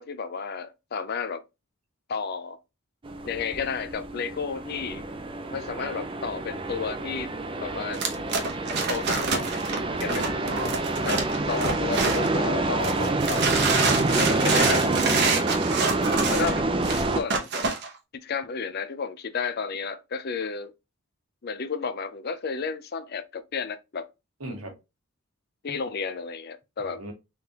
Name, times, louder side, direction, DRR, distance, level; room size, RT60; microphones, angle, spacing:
voice 1, 0.0-1.4 2.1-2.6 3.2-5.0 5.5-7.3 7.6-8.0 8.9-9.6 10.0-10.2 11.0-11.2 11.5-15.3 15.9-16.6 17.1-17.5 18.2-20.7 21.4-24.1 25.6-27.0, left 5 dB, 45° left, 0.5 m, -32 dB
sound 1, 3.0-17.2, right 2 dB, 25° right, 0.4 m, -27 dB
sound 2, 7.9-12.4 12.8-17.9, right 4 dB, 50° right, 0.9 m, -27 dB
voice 2, 10.1-11.1 14.3-14.7 24.4-24.7 26.8-27.1, right 1 dB, 85° right, 1.6 m, -39 dB
3.8 x 3.5 x 2.8 m
head